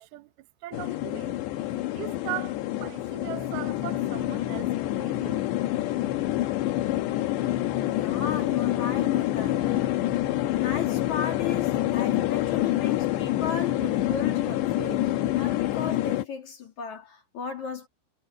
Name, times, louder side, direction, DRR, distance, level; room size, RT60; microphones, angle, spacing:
voice 1, 0.0-5.4, right 15 dB, 75° right, 2.4 m, -39 dB
sound 1, 0.7-16.3, left 14 dB, 70° left, 3.2 m, -27 dB
voice 2, 7.9-17.9, left 7 dB, 45° left, 3.4 m, -35 dB
omnidirectional pair, 5.6 m